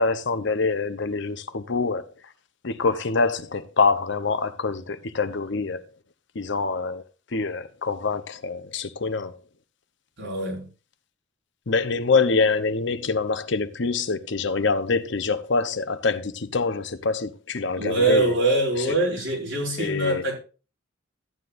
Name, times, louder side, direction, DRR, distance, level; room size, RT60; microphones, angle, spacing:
voice 1, 0.0-2.0 2.6-5.8 6.3-7.0 7.3-9.4 11.7-18.4 19.8-20.2, left 4 dB, 65° left, 0.8 m, -25 dB
voice 2, 10.2-10.7 17.8-20.3, right 2 dB, 75° right, 5.6 m, -23 dB
14.0 x 9.7 x 2.6 m
head